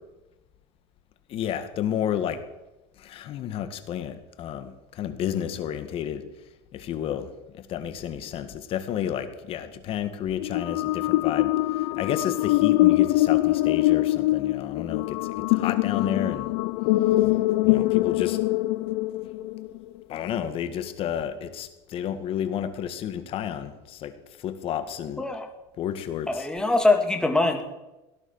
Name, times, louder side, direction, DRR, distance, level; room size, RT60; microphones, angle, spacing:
voice 1, 1.3-2.4 3.0-6.2 6.7-7.3 7.7-11.5 11.8-16.5 17.6-18.4 20.1-24.1 24.4-25.2 25.8-26.5, left 9 dB, 45° left, 10 dB, 1.8 m, -31 dB
sound 1, 10.4-19.8, left 18 dB, 70° left, 0.6 m, -23 dB
voice 2, 25.2-25.5 26.3-27.6, left 2 dB, 5° left, 5 dB, 2.1 m, -22 dB
17.5 x 11.0 x 7.2 m, 0.99 s
supercardioid pair, 135°, 14 cm